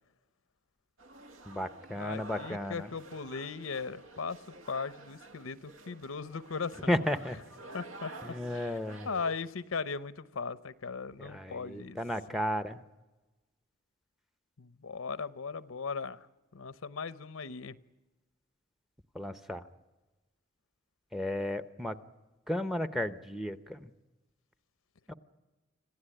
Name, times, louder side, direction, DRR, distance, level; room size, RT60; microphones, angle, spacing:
sound 1, 1.0-9.3, right 2 dB, 70° right, 1.4 m, -50 dB
voice 1, 1.5-2.9 6.9-7.4 8.2-9.1 11.2-12.8 19.1-19.6 21.1-22.0 22.5-23.9 25.1-25.2, left 1 dB, ahead, 0.7 m, -34 dB
voice 2, 2.0-4.4 4.7-6.9 7.7-8.7 9.0-12.0 14.6-16.3 16.5-17.8, left 5 dB, 75° left, 0.8 m, -38 dB
26.5 x 15.5 x 10.0 m
head